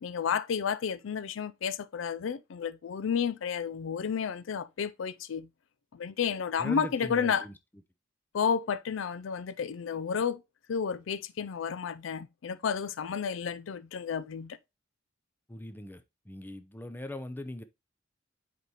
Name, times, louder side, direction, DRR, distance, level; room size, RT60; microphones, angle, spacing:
voice 1, 0.0-5.5 5.9-7.5 8.3-10.4 10.7-14.6, left 7 dB, 85° left, 0.4 m, -31 dB
voice 2, 6.6-7.5 15.5-17.6, left 1 dB, 10° left, 0.5 m, -40 dB
8.1 x 4.1 x 2.9 m
head